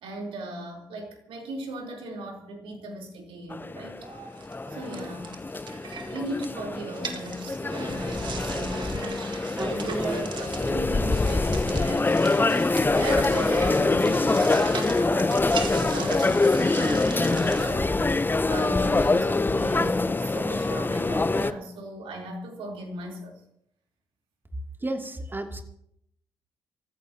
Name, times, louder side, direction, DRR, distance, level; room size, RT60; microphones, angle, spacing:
voice 1, 0.0-4.1 4.7-5.4 6.1-9.3 9.6-23.3, right 1 dB, 65° right, 1 dB, 3.8 m, -37 dB
sound 1, 3.5-21.5, left 3 dB, 20° left, 0.8 m, -25 dB
sound 2, 4.0-17.7, right 5 dB, 50° right, 1.9 m, -39 dB
voice 2, 24.8-25.6, right 2 dB, 20° right, 3 dB, 2.7 m, -32 dB
28.0 x 14.5 x 2.9 m, 0.73 s
hypercardioid pair, 40°, 10 cm